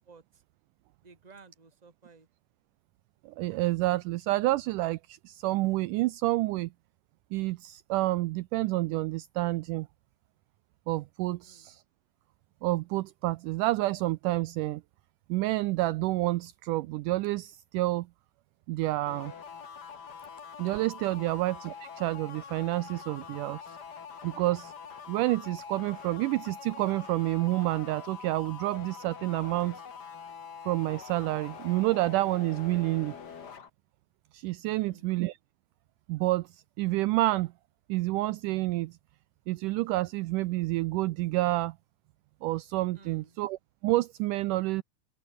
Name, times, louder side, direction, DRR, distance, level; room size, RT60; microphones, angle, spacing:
voice 1, 0.1-0.4 1.0-2.3 11.4-11.8 21.2-21.4 34.7-35.1 42.9-43.4, right 4 dB, 15° right, 1.9 m, -55 dB
voice 2, 3.3-6.7 7.3-9.9 10.9-11.8 12.6-14.8 15.3-18.1 18.7-19.3 20.6-23.6 24.2-24.7 25.1-29.8 30.6-33.2 34.3-35.4 36.1-36.5 36.8-37.5 37.9-39.0 39.5-41.8 42.4-44.8, right 18 dB, 80° right, 2.0 m, -29 dB
sound 1, 19.1-33.7, left 6 dB, 40° left, 1.7 m, -45 dB
open air
omnidirectional pair, 4.0 m